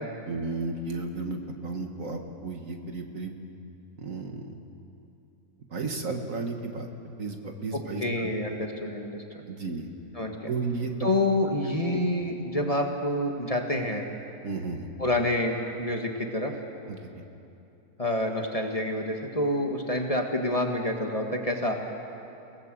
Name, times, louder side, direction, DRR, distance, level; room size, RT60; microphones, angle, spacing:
voice 1, 0.3-3.3 4.0-4.6 5.7-6.9 7.2-8.3 9.5-9.9 10.5-11.1 14.4-14.9 16.9-17.1, right 3 dB, 60° right, 4 dB, 2.0 m, -33 dB
voice 2, 7.7-9.4 10.1-10.5 11.0-14.0 15.0-16.5 18.0-21.8, left 1 dB, 25° left, 2 dB, 1.8 m, -28 dB
29.0 x 18.0 x 7.7 m, 2.8 s
omnidirectional pair, 1.6 m